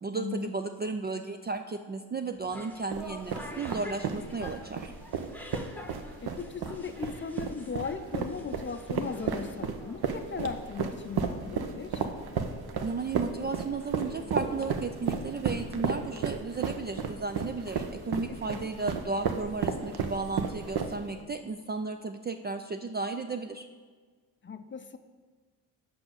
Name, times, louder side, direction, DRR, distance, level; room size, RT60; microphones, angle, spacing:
voice 1, 0.0-4.9 12.8-23.7, right 4 dB, 25° right, 6 dB, 0.4 m, -34 dB
sound 1, 2.3-11.4, left 1 dB, 5° left, 1.0 m, -48 dB
sound 2, 2.9-21.2, right 6 dB, 55° right, 0.9 m, -33 dB
voice 2, 6.2-12.0 18.3-18.7 24.4-25.0, left 6 dB, 25° left, 9 dB, 0.6 m, -38 dB
6.0 x 5.3 x 6.4 m, 1.5 s
hypercardioid pair, 45°, 47 cm